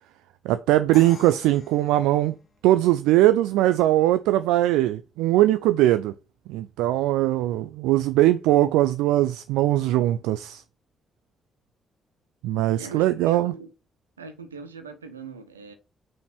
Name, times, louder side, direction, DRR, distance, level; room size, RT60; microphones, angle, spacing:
voice 1, 0.4-2.3 2.6-6.1 6.5-10.6 12.4-13.5, right 14 dB, 70° right, 0.4 m, -21 dB
Crash cymbal, 0.9-2.8, left 6 dB, 55° left, 1.6 m, -46 dB
voice 2, 12.8-13.7 14.2-15.7, right 4 dB, 85° right, 0.8 m, -40 dB
5.6 x 5.2 x 5.8 m
figure-of-eight pair, 40°, 0 cm